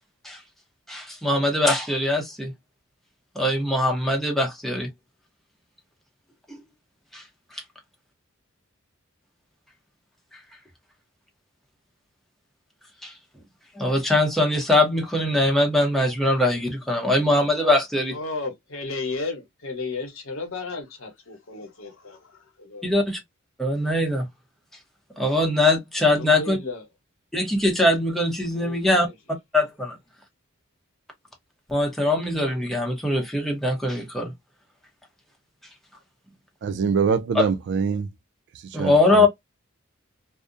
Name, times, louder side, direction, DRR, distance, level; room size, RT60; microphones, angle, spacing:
voice 1, 0.9-2.5 3.4-4.9 6.5-6.6 7.1-7.2 13.0-13.1 13.8-18.1 22.8-23.2 23.6-24.3 25.2-26.6 27.3-29.1 29.5-30.0 31.7-34.3 37.4-37.5 38.7-39.3, left 2 dB, ahead, 0.7 m, -22 dB
voice 2, 18.1-22.9 26.1-26.8 28.5-29.1, left 3 dB, 70° left, 1.0 m, -34 dB
voice 3, 36.6-38.1 38.6-39.3, right 5 dB, 55° right, 0.3 m, -24 dB
2.4 x 2.0 x 2.5 m
head